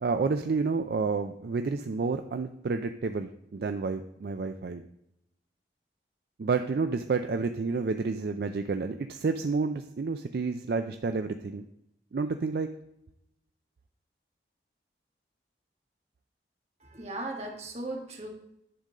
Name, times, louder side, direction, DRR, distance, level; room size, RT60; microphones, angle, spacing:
voice 1, 0.0-4.8 6.4-11.7 12.1-12.7, right 4 dB, 60° right, 8 dB, 0.4 m, -30 dB
voice 2, 16.8-18.3, right 2 dB, 35° right, 1 dB, 1.4 m, -37 dB
10.5 x 3.8 x 6.5 m, 0.82 s
head